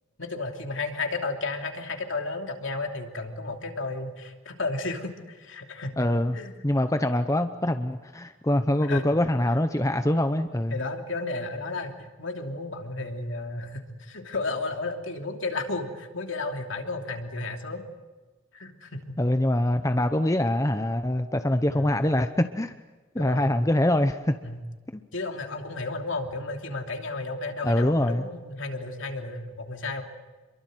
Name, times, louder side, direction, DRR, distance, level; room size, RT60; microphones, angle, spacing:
voice 1, 0.2-5.9 6.3-6.6 8.9-9.0 10.7-11.9 12.2-17.8 18.5-19.2 21.7-22.0 23.1-23.5 24.4-24.6 25.1-30.0, left 3 dB, 65° left, 4 dB, 3.0 m, -33 dB
voice 2, 6.0-6.4 6.6-10.8 19.2-22.7 23.1-24.4 24.9-25.0 27.6-28.2, left 1 dB, 15° left, 8 dB, 0.8 m, -24 dB
28.5 x 23.0 x 7.9 m, 1.2 s
head